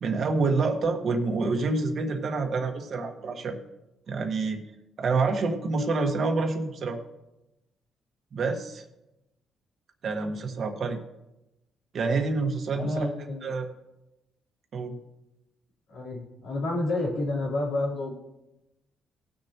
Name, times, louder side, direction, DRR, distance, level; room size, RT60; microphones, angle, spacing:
voice 1, 0.0-3.6 4.1-4.6 5.0-7.0 8.3-8.8 10.0-11.0 11.9-13.1 13.4-13.7 14.7-15.0, right 3 dB, 55° right, 4 dB, 1.5 m, -27 dB
voice 2, 12.7-13.5 15.9-18.1, left 2 dB, 90° left, -5 dB, 3.6 m, -29 dB
18.5 x 6.7 x 3.0 m, 0.93 s
cardioid pair, 90°, 0 cm